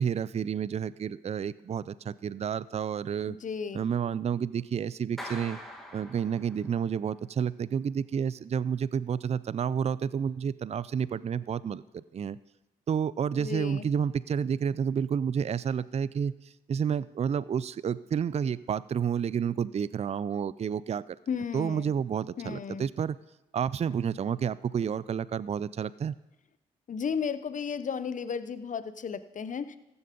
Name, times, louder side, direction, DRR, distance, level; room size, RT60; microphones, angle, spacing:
voice 1, 0.0-3.4 3.7-5.6 5.9-12.4 12.9-16.3 16.7-21.2 21.5-23.2 23.5-26.2, right 7 dB, 40° right, 19 dB, 0.4 m, -30 dB
voice 2, 3.3-3.9 13.3-13.9 21.3-21.9 22.4-22.9 26.9-29.8, left 6 dB, 50° left, 13 dB, 0.8 m, -34 dB
Clapping, 5.2-6.9, left 1 dB, ahead, 2.3 m, -43 dB
14.5 x 7.0 x 5.2 m, 0.97 s
supercardioid pair, 45°, 17 cm